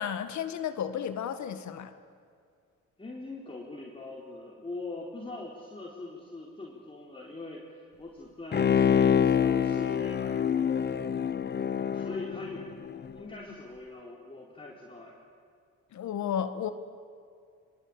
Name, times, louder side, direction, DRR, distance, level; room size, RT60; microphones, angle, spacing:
voice 1, 0.0-1.9 15.9-16.7, left 8 dB, 70° left, 10 dB, 1.8 m, -33 dB
voice 2, 3.0-10.7 11.9-12.6 13.1-15.2, left 2 dB, 20° left, -4 dB, 4.3 m, -42 dB
Bowed string instrument, 8.5-13.1 13.5-13.6, left 8 dB, 35° left, 0.9 m, -26 dB
23.0 x 22.5 x 8.8 m, 2.3 s
cardioid pair, 90°, 30 cm